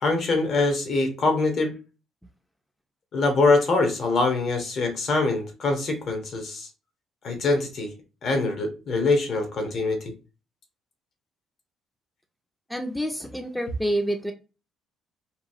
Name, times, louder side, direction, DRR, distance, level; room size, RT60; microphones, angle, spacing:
voice 1, 0.0-1.7 3.1-6.7 7.2-7.9 8.2-10.1, left 3 dB, 50° left, 5 dB, 0.9 m, -24 dB
voice 2, 12.7-14.3, equal, ahead, 4 dB, 0.4 m, -28 dB
2.9 x 2.3 x 2.6 m, 0.32 s
cardioid pair, 110°, 0 cm